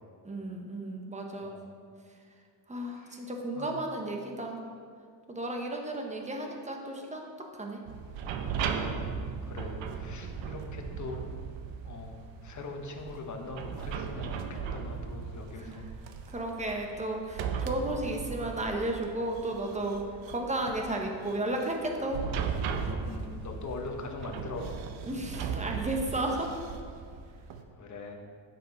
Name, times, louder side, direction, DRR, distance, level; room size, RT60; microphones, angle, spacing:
voice 1, 0.2-1.6 2.0-4.6 5.3-7.8 15.5-15.9 16.3-22.2 25.0-26.5, right 1 dB, 15° right, 1 dB, 1.2 m, -34 dB
sound 1, 7.9-27.6, right 6 dB, 90° right, 0.9 m, -37 dB
voice 2, 8.9-11.3 11.8-15.9 23.0-24.8 27.8-28.2, left 3 dB, 40° left, 3 dB, 1.2 m, -42 dB
9.8 x 7.9 x 4.1 m, 2.2 s
cardioid pair, 120°, 44 cm